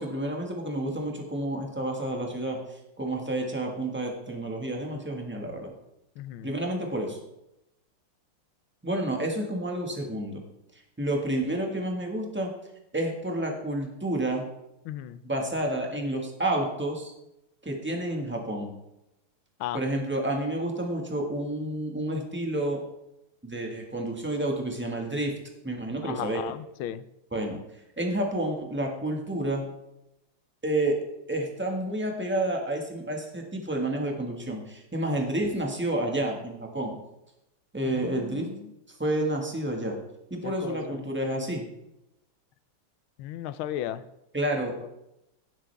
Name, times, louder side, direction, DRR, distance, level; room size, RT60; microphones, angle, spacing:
voice 1, 0.0-5.7 6.4-7.2 8.8-10.4 11.0-12.5 12.9-14.4 15.2-17.1 17.6-18.7 19.7-22.8 23.4-25.3 25.6-26.4 27.3-27.6 28.0-29.6 30.6-31.0 31.3-36.9 37.7-38.5 38.9-40.0 40.3-41.7 44.3-44.9, right 1 dB, 5° right, 1 dB, 1.3 m, -30 dB
voice 2, 6.2-6.5 14.9-15.2 19.6-19.8 26.0-27.0 37.9-38.6 40.4-40.8 43.2-44.0, left 12 dB, 80° left, 15 dB, 1.4 m, -35 dB
17.0 x 7.5 x 3.4 m, 0.88 s
omnidirectional pair, 2.4 m